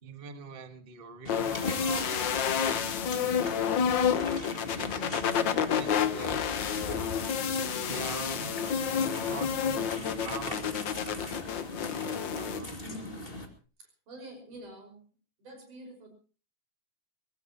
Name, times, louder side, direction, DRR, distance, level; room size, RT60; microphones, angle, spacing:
voice 1, 0.0-3.6 4.8-7.1 7.9-12.0 12.3-13.0, right 5 dB, 25° right, 8 dB, 1.1 m, -45 dB
sound 1, 1.2-13.5, left 2 dB, 20° left, 2.3 m, -39 dB
sound 2, 1.3-12.6, left 7 dB, 60° left, 1.2 m, -30 dB
voice 2, 12.8-13.2 13.8-15.1 15.4-16.1, right 1 dB, 75° right, 5 dB, 7.2 m, -47 dB
23.0 x 18.5 x 3.0 m, 0.37 s
omnidirectional pair, 3.6 m